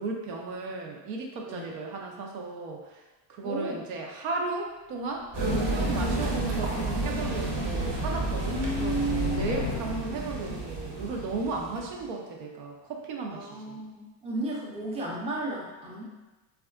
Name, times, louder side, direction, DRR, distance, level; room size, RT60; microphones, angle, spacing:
voice 1, 0.0-3.0 3.3-5.3 5.6-9.0 9.3-13.8, right 3 dB, 75° right, 0 dB, 0.7 m, -35 dB
voice 2, 3.4-3.8 8.4-9.7 13.3-16.0, right 2 dB, 15° right, -4 dB, 0.5 m, -33 dB
sound 1, 5.1-10.4, left 5 dB, 55° left, 0.5 m, -38 dB
sound 2, 5.3-12.1, right 2 dB, 35° right, 0.8 m, -31 dB
3.5 x 2.3 x 2.3 m, 1.1 s
supercardioid pair, 110°, 49 cm